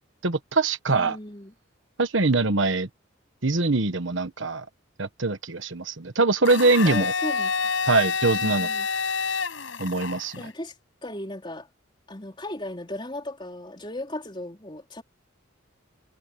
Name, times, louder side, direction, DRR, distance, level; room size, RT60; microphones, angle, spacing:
voice 1, 0.2-1.2 2.0-2.9 3.4-4.6 5.0-7.1 7.9-8.7 9.8-10.4, right 3 dB, 70° right, 1.2 m, -23 dB
voice 2, 0.9-1.5 6.8-7.7 8.4-8.9 10.4-10.8 11.0-11.7 12.1-15.0, left 1 dB, 25° left, 4.1 m, -36 dB
Domestic sounds home sounds, 6.4-10.5, left 5 dB, 70° left, 7.0 m, -28 dB
head